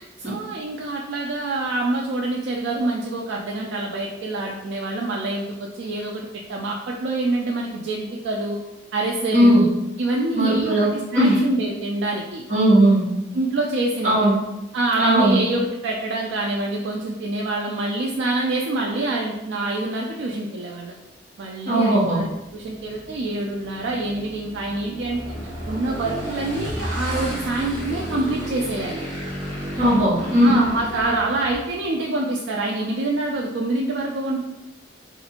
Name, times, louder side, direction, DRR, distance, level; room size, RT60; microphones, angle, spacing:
voice 1, 0.0-6.2 6.5-8.6 8.9-9.7 10.0-12.4 13.3-14.3 14.7-20.9 21.4-25.4 25.7-29.0 30.4-34.4, right 2 dB, 70° right, -1 dB, 0.4 m, -26 dB
voice 2, 9.3-9.6 10.3-10.9 11.1-11.4 12.5-13.0 14.0-14.4 15.0-15.4 21.7-22.2 29.8-30.5, right 1 dB, 40° right, -7 dB, 1.2 m, -17 dB
Motorcycle / Engine, 22.3-31.9, equal, 20° right, 1.4 m, -32 dB
2.6 x 2.5 x 4.1 m, 0.98 s
head